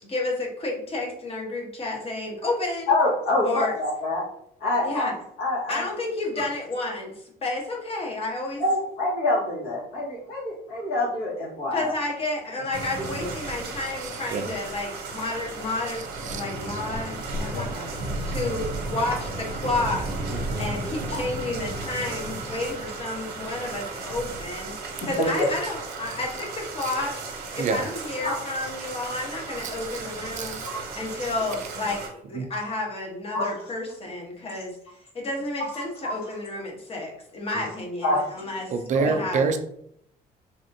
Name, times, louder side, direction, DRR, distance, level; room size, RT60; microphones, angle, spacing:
voice 1, 0.0-2.9 3.4-3.7 4.8-5.1 5.7-8.6 11.7-27.3 27.5-38.7 39.0-39.4, left 2 dB, 35° left, -1 dB, 1.0 m, -31 dB
voice 2, 2.9-4.2 4.6-5.1 5.4-5.8 8.6-11.9 21.1-21.2 25.2-25.3 28.2-28.3 33.3-33.5 38.0-38.4 38.9-39.1, left 2 dB, 65° left, -5 dB, 1.5 m, -25 dB
sound 1, 12.7-32.1, right 2 dB, 70° right, 0.8 m, -34 dB
voice 3, 14.0-14.5 15.9-16.4 16.7-16.8 20.3-20.7 26.8-26.9 27.6-27.9 29.6-30.0 30.4-30.7 32.3-32.5 37.6-37.7 38.7-39.6, right 5 dB, 45° right, 7 dB, 0.4 m, -28 dB
3.4 x 2.5 x 2.6 m, 0.71 s
cardioid pair, 110°, 17 cm